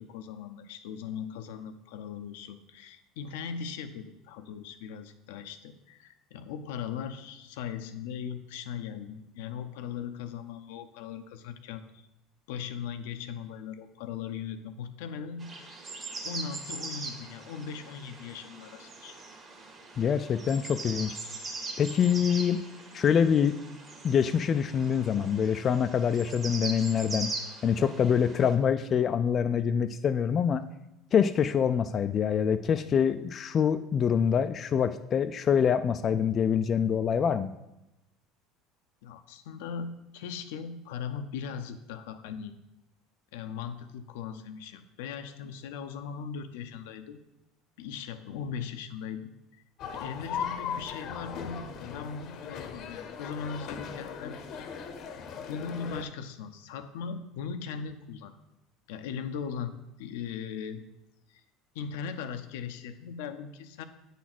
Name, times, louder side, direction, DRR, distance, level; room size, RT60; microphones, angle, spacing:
voice 1, 0.0-12.1 12.5-15.7 16.2-19.2 39.0-42.5 43.3-47.2 47.8-49.6 49.9-54.6 55.5-58.3 58.9-60.8 61.3-61.4 61.7-63.8, left 7 dB, 85° left, 8 dB, 0.6 m, -39 dB
sound 1, 15.4-28.5, right 3 dB, 35° right, 1.6 m, -41 dB
voice 2, 20.0-21.2 21.8-22.6 22.9-23.5 24.0-27.3 27.6-30.6 31.1-37.5, left 7 dB, 40° left, 9 dB, 0.3 m, -25 dB
sound 2, 49.8-56.0, left 7 dB, 55° left, 0.8 m, -38 dB
8.2 x 4.0 x 6.0 m, 0.92 s
supercardioid pair, 105°, 0 cm